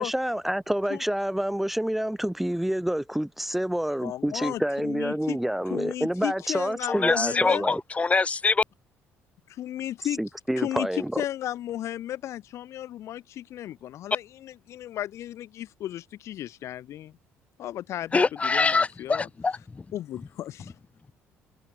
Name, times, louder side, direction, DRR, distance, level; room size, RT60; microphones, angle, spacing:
voice 1, 0.0-7.8 10.2-11.2, equal, 5° right, 1.3 m, -28 dB
voice 2, 4.0-5.4 5.7-7.6 9.5-10.2 10.6-10.9 11.2-17.1 17.6-19.3 19.9-20.7, left 12 dB, 70° left, 3.1 m, -34 dB
voice 3, 6.9-8.6 18.1-19.8, left 4 dB, 25° left, 3.1 m, -24 dB
cardioid pair, 95°, 5 cm